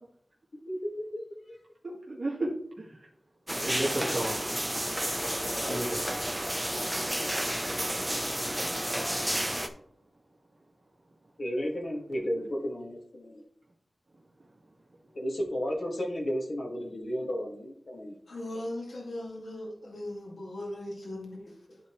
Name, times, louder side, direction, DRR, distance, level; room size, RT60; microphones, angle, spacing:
voice 1, 0.7-1.2 5.4-6.0 11.4-13.4 15.1-18.2, equal, 60° left, -1 dB, 2.1 m, -33 dB
voice 2, 1.8-2.5 2.8-3.0 3.6-4.5 5.7-6.0, right 1 dB, 45° right, -4 dB, 1.8 m, -33 dB
sound 1, 3.5-9.7, equal, 5° right, 0.8 m, -31 dB
voice 3, 18.3-21.8, left 1 dB, 75° left, -2 dB, 2.3 m, -39 dB
12.5 x 4.3 x 3.2 m, 0.65 s
wide cardioid pair, 80°, 0 cm